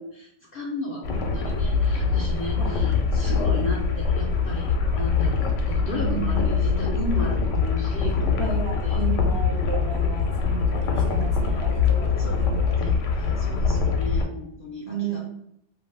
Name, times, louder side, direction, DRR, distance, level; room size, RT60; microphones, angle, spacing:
voice 1, 0.0-9.0 11.3-11.7 12.2-12.4 12.8-15.2, left 1 dB, 60° left, -2 dB, 0.7 m, -35 dB
sound 1, 1.0-14.2, left 5 dB, 90° left, 0.9 m, -23 dB
voice 2, 5.8-6.5 8.4-12.7 14.8-15.2, right 5 dB, 30° right, -4 dB, 0.5 m, -33 dB
2.5 x 2.3 x 3.2 m, 0.73 s
omnidirectional pair, 1.2 m